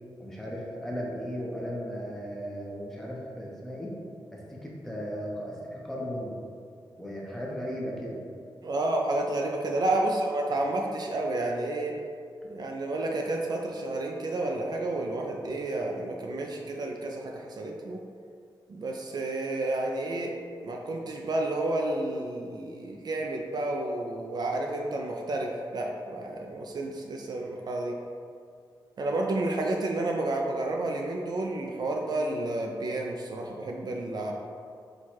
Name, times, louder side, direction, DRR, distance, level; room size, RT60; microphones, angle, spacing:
voice 1, 0.2-3.9 4.3-6.3 7.0-8.2, equal, 5° left, -4 dB, 0.8 m, -36 dB
voice 2, 8.6-12.0 12.4-18.0 18.7-20.3 20.6-28.0 29.0-34.3, right 2 dB, 55° right, 0 dB, 0.4 m, -30 dB
4.6 x 2.3 x 4.3 m, 2.3 s
wide cardioid pair, 110°, 8 cm